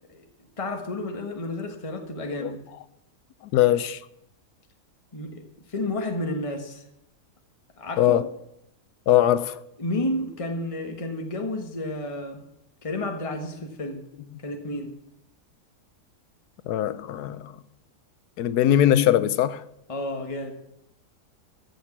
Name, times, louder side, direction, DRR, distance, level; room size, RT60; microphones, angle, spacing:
voice 1, 0.6-2.6 5.1-5.4 5.7-6.8 7.8-8.3 9.8-12.4 12.8-14.0 14.4-14.9 19.9-20.5, left 1 dB, 20° left, 1.4 m, -31 dB
voice 2, 3.5-4.0 8.0-8.3 9.1-9.6 14.3-14.4 16.7-17.6 18.4-19.6, left 12 dB, 80° left, 1.2 m, -21 dB
15.0 x 6.5 x 7.4 m
omnidirectional pair, 1.7 m